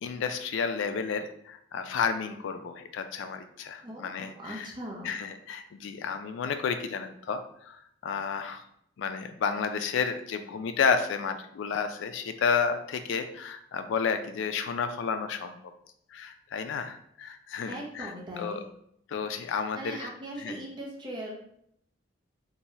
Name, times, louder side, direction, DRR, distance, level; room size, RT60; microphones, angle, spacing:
voice 1, 0.0-4.7 5.0-8.6 9.0-15.6 16.1-18.1 18.4-18.6 19.1-20.1 20.4-20.6, left 6 dB, 85° left, 9 dB, 0.3 m, -31 dB
voice 2, 3.8-5.2 17.6-18.6 19.7-21.3, right 1 dB, 25° right, -2 dB, 0.5 m, -39 dB
2.7 x 2.2 x 3.1 m, 0.71 s
head